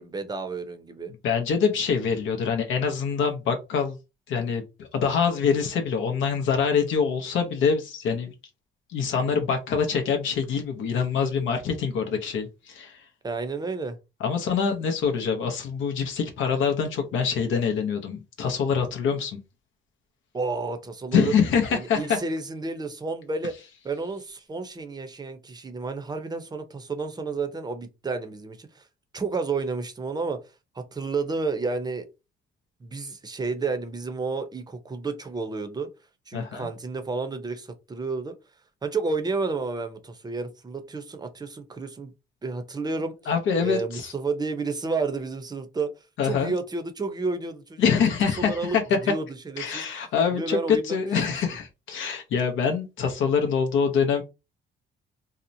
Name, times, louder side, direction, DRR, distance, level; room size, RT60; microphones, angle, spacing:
voice 1, 0.0-1.1 13.2-14.0 20.3-21.3 21.7-23.5 23.8-28.9 29.1-30.4 30.7-32.0 32.8-35.9 36.3-38.3 38.8-42.1 42.4-43.1 43.6-45.9 46.2-47.8 48.4-48.8 49.0-50.0 50.3-51.0 51.3-51.4, right 4 dB, 20° right, 0.6 m, -31 dB
voice 2, 1.2-4.0 4.3-8.3 8.9-13.0 14.2-19.4 21.1-22.2 36.3-36.7 43.3-44.1 46.2-46.5 47.8-49.0 49.6-54.2, left 6 dB, 75° left, 0.6 m, -25 dB
2.8 x 2.0 x 2.6 m
cardioid pair, 90°, 20 cm